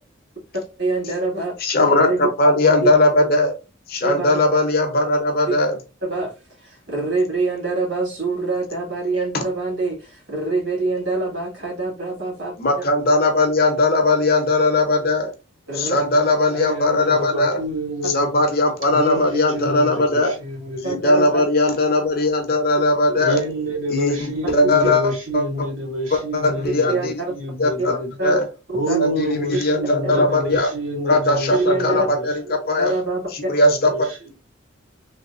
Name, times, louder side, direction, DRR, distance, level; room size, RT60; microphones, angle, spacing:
voice 1, 0.8-1.6 1.9-2.3 4.0-4.3 6.0-6.3 6.6-12.5 15.7-16.0 20.8-21.4 26.9-27.3 27.8-27.9 28.2-28.4 28.7-29.0 30.0-30.2 31.5-32.1 32.8-33.5, right 3 dB, 60° right, 1.8 m, -25 dB
voice 2, 1.6-3.5 3.9-5.8 9.3-9.4 12.6-15.3 15.8-17.6 18.1-20.3 20.8-23.4 23.9-25.4 26.1-27.1 27.6-28.4 29.0-30.7 31.0-32.9 33.5-34.1, left 2 dB, 45° left, 0.7 m, -19 dB
voice 3, 16.5-18.4 18.9-21.0 23.2-28.1 28.7-32.6 33.7-34.3, equal, 80° right, 1.9 m, -28 dB
3.3 x 2.7 x 2.5 m
head